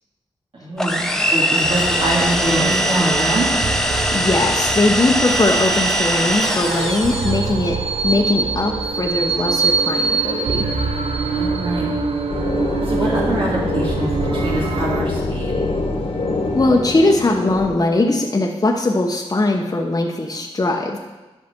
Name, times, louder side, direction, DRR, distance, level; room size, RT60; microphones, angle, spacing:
voice 1, 0.5-3.5 11.3-11.9 12.8-15.5, right 1 dB, 55° right, -5 dB, 2.3 m, -24 dB
sound 1, 0.8-7.5, equal, 5° left, 0.9 m, -21 dB
sound 2, 1.6-15.0, right 4 dB, 70° right, 0.8 m, -24 dB
voice 2, 4.1-7.8 8.0-10.6 16.5-21.0, left 2 dB, 35° left, 0 dB, 1.0 m, -20 dB
sound 3, 12.3-17.7, left 2 dB, 65° left, 1.6 m, -24 dB
10.5 x 5.9 x 4.4 m, 1.1 s
cardioid pair, 65°, 11 cm